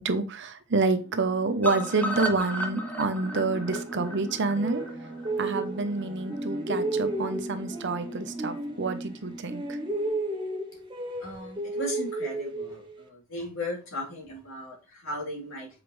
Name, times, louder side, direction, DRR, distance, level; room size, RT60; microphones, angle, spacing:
voice 1, 0.0-4.8 5.4-9.8, right 3 dB, 55° right, 8 dB, 0.8 m, -28 dB
sound 1, 1.0-10.1, right 2 dB, 35° left, 3.0 m, -41 dB
sound 2, 1.6-5.6 6.0-6.1 6.4-6.5 6.8-6.9, equal, 10° left, 0.8 m, -34 dB
sound 3, 3.2-6.0 6.3-9.2 9.5-13.0, right 2 dB, 20° right, 1.0 m, -33 dB
voice 2, 11.2-15.7, left 1 dB, 65° left, -4 dB, 3.5 m, -37 dB
7.9 x 4.9 x 3.2 m, 0.34 s
head